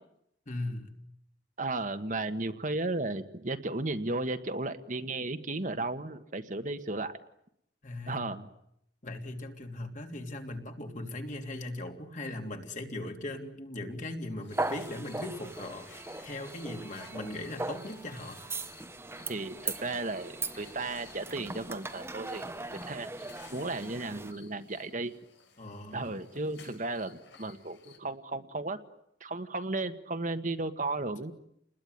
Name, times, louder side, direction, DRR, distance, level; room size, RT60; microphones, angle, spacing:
voice 1, 0.5-1.0 7.8-8.3 9.0-15.9 16.2-18.4 25.6-26.1, left 1 dB, 45° left, 4 dB, 3.2 m, -39 dB
voice 2, 1.6-7.2 8.1-8.5 19.3-22.4 22.9-25.1 25.9-28.8 29.2-31.3, right 2 dB, 45° right, 8 dB, 1.5 m, -34 dB
sound 1, 14.4-28.0, left 6 dB, 90° left, 5.2 m, -57 dB
sound 2, 14.5-24.3, right 2 dB, 15° right, 1.1 m, -39 dB
29.5 x 21.0 x 9.6 m, 0.78 s
head